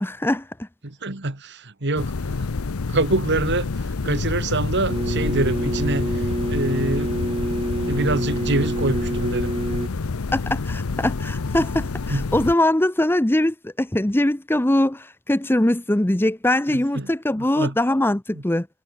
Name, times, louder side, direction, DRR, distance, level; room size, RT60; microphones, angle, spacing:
voice 1, 0.0-0.7 10.3-18.7, left 1 dB, 10° left, 0.7 m, -22 dB
voice 2, 0.8-2.5 2.9-7.4 7.9-9.5 12.1-12.2 16.7-17.1 17.4-17.8 18.3-18.4, right 2 dB, 50° right, 2.1 m, -26 dB
sound 1, 2.0-12.5, left 4 dB, 75° left, 0.7 m, -28 dB
sound 2, 4.9-9.9, right 1 dB, 25° right, 1.2 m, -27 dB
head